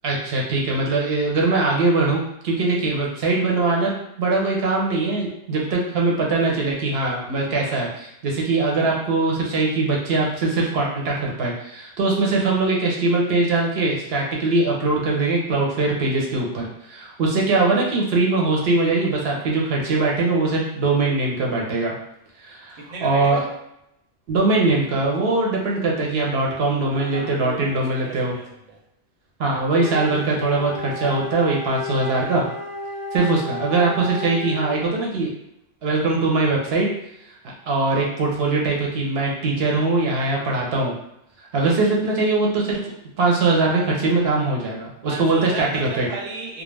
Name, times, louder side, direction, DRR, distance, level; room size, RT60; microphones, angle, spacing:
voice 1, 0.0-3.9 4.2-21.9 22.4-23.4 24.3-28.3 29.4-32.5 33.1-35.3 35.8-36.9 37.7-40.9 41.5-42.8 43.2-46.1, right 3 dB, 60° right, -1 dB, 0.8 m, -21 dB
voice 2, 22.7-23.5 26.9-28.8 29.5-29.6 45.0-46.6, right 4 dB, 90° right, -1 dB, 1.0 m, -34 dB
Wind instrument woodwind instrument, 29.7-34.9, left 1 dB, 10° right, 0.8 m, -32 dB
2.3 x 2.1 x 3.2 m, 0.80 s
omnidirectional pair, 1.3 m